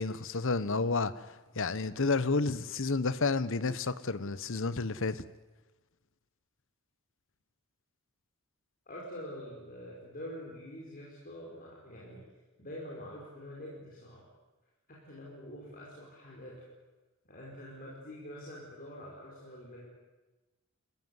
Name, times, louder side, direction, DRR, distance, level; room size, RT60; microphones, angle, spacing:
voice 1, 0.0-5.2, left 3 dB, 60° left, 1.0 m, -31 dB
voice 2, 8.9-12.2 12.6-14.2 14.9-16.7 17.2-19.9, equal, 40° left, 5.0 m, -46 dB
28.5 x 15.0 x 9.6 m
head